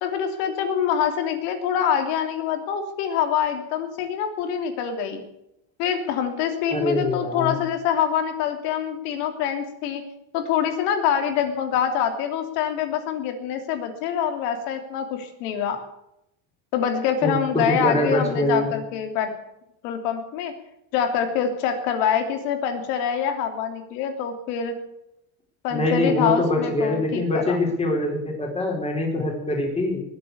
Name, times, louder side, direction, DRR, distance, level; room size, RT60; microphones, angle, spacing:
voice 1, 0.0-5.2 5.8-10.0 10.3-15.8 16.7-19.3 19.8-20.5 20.9-24.7 25.6-27.6, left 8 dB, 85° left, 6 dB, 3.1 m, -25 dB
voice 2, 6.7-7.6 17.2-18.7 25.7-30.0, left 1 dB, 15° left, 0 dB, 4.4 m, -24 dB
20.0 x 8.1 x 8.3 m, 0.84 s
cardioid pair, 130°, 46 cm